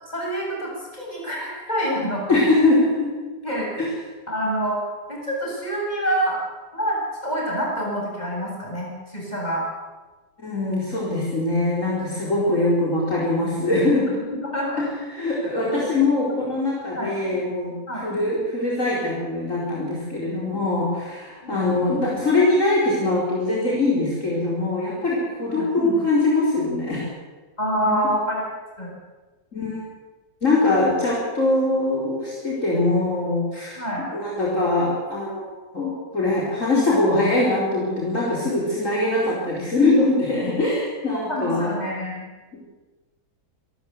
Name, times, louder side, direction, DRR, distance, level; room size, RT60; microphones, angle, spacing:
voice 1, 0.1-2.2 3.4-3.8 4.3-4.8 5.1-6.4 6.7-9.6 14.4-14.9 15.7-15.9 17.0-17.1 17.9-18.1 20.2-20.4 21.4-21.6 25.5-25.7 27.6-28.5 28.8-28.9 33.7-34.0 41.3-42.3, equal, 25° left, -3 dB, 7.8 m, -27 dB
voice 2, 2.3-3.1 3.8-3.9 10.4-14.1 14.8-14.9 15.1-17.7 18.0-27.0 27.9-28.2 29.5-29.8 30.4-33.8 34.1-41.7, left 2 dB, 50° left, -5 dB, 4.9 m, -22 dB
26.5 x 13.5 x 8.1 m, 1.2 s
omnidirectional pair, 1.7 m